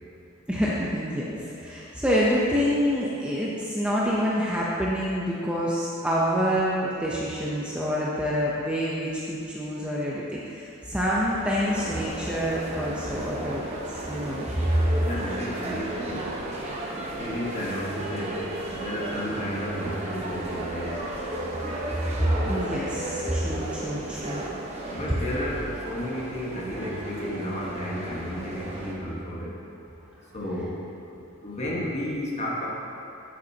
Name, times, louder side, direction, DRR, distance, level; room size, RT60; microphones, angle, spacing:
voice 1, 0.5-14.8 22.1-24.4, equal, 5° right, -6 dB, 0.7 m, -27 dB
sound 1, 11.1-28.9, right 1 dB, 30° right, 1.0 m, -34 dB
voice 2, 15.0-16.3 17.2-21.0 24.9-29.5 30.3-32.7, equal, 30° left, -5 dB, 1.4 m, -32 dB
11.0 x 8.0 x 2.9 m, 2.7 s
head